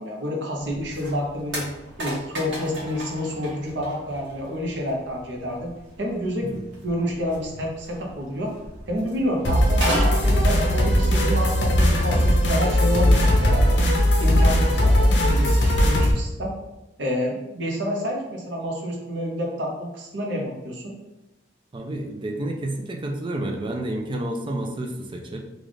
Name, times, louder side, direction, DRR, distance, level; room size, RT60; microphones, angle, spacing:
voice 1, 0.0-1.6 2.0-5.7 6.0-8.5 8.9-13.8 14.2-16.5 17.0-20.9, equal, 70° right, 0 dB, 0.8 m, -29 dB
Coke can, 0.6-11.7, right 1 dB, 90° right, 1.2 m, -36 dB
sound 1, 9.4-16.1, equal, 70° left, 0.7 m, -19 dB
voice 2, 21.7-25.4, right 1 dB, 25° right, 3 dB, 0.4 m, -30 dB
3.2 x 2.4 x 3.9 m, 0.98 s
head